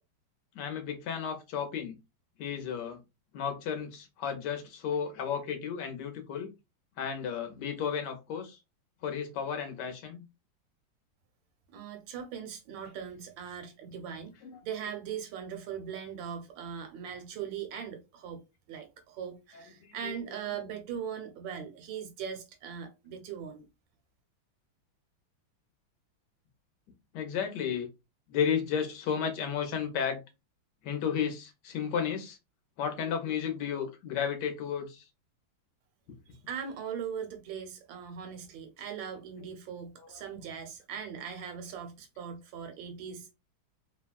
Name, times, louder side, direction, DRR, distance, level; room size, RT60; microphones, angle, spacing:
voice 1, 0.5-2.0 2.4-3.0 3.3-6.5 7.0-8.6 9.0-10.2 14.4-14.6 20.0-20.1 27.1-27.9 28.3-30.2 30.8-32.4 32.8-35.1, left 7 dB, 65° left, 1.2 m, -33 dB
voice 2, 11.7-14.4 14.6-23.7 36.3-43.3, right 7 dB, 70° right, 1.5 m, -40 dB
3.3 x 2.2 x 2.3 m
omnidirectional pair, 2.2 m